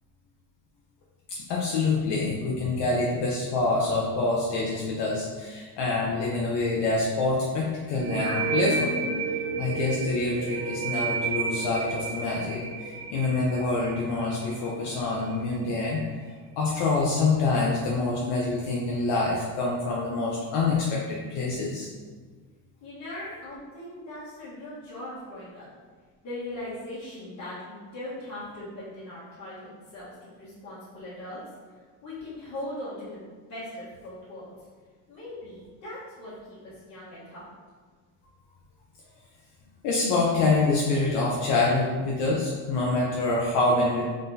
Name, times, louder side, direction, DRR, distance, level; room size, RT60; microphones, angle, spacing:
voice 1, 1.3-8.9 9.6-16.0 16.6-21.9 23.1-23.3 39.8-44.0, left 3 dB, 60° left, -4 dB, 0.7 m, -26 dB
sound 1, 7.9-15.3, right 5 dB, 35° right, 0.5 m, -31 dB
voice 2, 22.8-25.7 26.2-33.2 33.5-34.7 35.1-37.5, left 1 dB, 35° left, -12 dB, 1.2 m, -40 dB
3.8 x 3.7 x 2.7 m, 1.5 s
cardioid pair, 155°, 47 cm